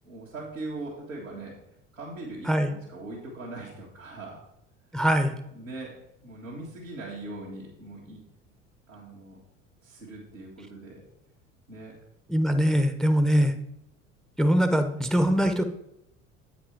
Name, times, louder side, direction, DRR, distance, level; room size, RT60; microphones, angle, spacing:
voice 1, 0.0-1.6 1.9-4.4 5.5-8.2 8.9-9.4 9.8-11.0 11.7-12.0, right 2 dB, 85° right, -6 dB, 1.8 m, -40 dB
voice 2, 4.9-5.3 12.3-13.5 14.4-15.6, equal, ahead, 8 dB, 0.6 m, -22 dB
8.5 x 5.1 x 4.5 m, 0.81 s
figure-of-eight pair, 60°, 38 cm